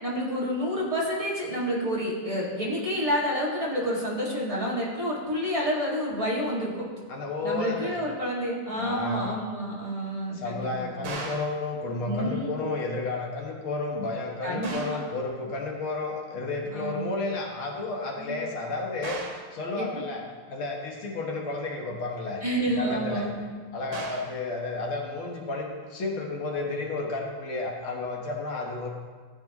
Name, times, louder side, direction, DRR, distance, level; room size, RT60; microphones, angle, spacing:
voice 1, 0.0-6.9 7.4-11.0 12.0-12.6 14.4-15.0 16.7-17.1 18.2-18.4 19.8-19.9 22.4-23.4, equal, 15° right, -6 dB, 1.9 m, -29 dB
voice 2, 7.1-8.0 8.7-9.4 10.3-20.2 20.5-22.4 22.8-23.3 23.7-28.9, left 3 dB, 70° left, 0 dB, 2.1 m, -32 dB
sound 1, 11.0-11.6 14.6-15.1 19.0-19.5 23.9-24.4, right 3 dB, 80° right, 2.2 m, -37 dB
14.5 x 8.4 x 3.0 m, 1.5 s
omnidirectional pair, 2.4 m